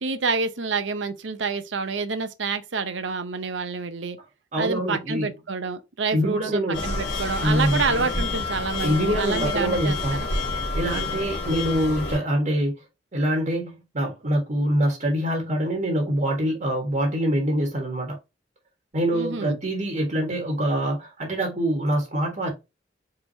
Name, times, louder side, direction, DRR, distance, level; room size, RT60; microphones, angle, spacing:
voice 1, 0.0-4.2 4.6-10.0 19.1-19.6, right 4 dB, 85° right, 0.8 m, -28 dB
voice 2, 4.5-5.3 6.1-6.8 7.4-7.8 8.8-10.2 10.7-12.8 13.1-18.2 18.9-22.5, equal, 40° right, 1.5 m, -25 dB
sound 1, 6.7-12.2, left 2 dB, 70° left, 2.4 m, -28 dB
4.7 x 3.6 x 2.8 m
head